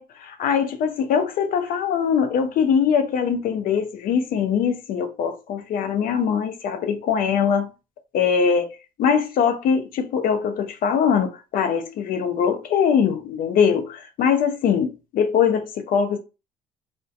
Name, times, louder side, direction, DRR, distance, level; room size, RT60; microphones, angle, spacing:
voice 1, 0.0-7.7 8.1-8.7 9.0-16.2, left 7 dB, 65° left, 0.5 m, -22 dB
2.5 x 2.2 x 2.5 m
supercardioid pair, 70°, 16 cm